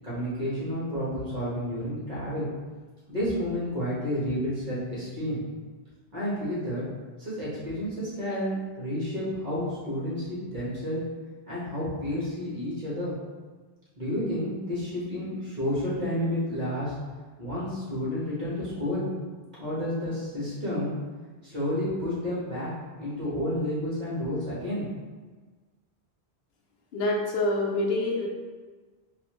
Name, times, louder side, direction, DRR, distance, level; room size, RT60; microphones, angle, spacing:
voice 1, 0.0-2.5 3.1-5.4 6.1-6.8 7.2-11.0 11.5-13.1 14.0-16.9 17.4-19.1 19.6-20.9 21.4-22.7 23.0-24.8, left 1 dB, 45° right, -9 dB, 1.4 m, -30 dB
voice 2, 26.9-28.3, left 2 dB, 75° left, -1 dB, 0.8 m, -26 dB
4.0 x 2.5 x 3.0 m, 1.4 s
omnidirectional pair, 1.1 m